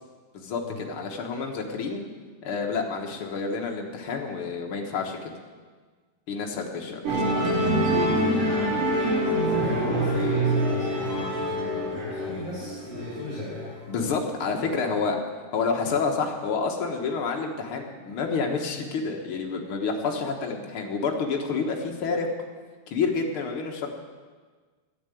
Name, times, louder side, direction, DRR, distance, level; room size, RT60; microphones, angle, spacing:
voice 1, 0.3-2.0 2.4-5.3 6.3-7.2 13.9-15.2 15.5-22.3 22.9-23.9, left 4 dB, 70° left, 1 dB, 1.3 m, -29 dB
Musical instrument, 7.0-13.7, right 1 dB, 90° right, 5.4 m, -25 dB
voice 2, 8.3-13.8, left 2 dB, 20° left, -9 dB, 5.8 m, -36 dB
13.0 x 10.5 x 9.2 m, 1.4 s
omnidirectional pair, 4.6 m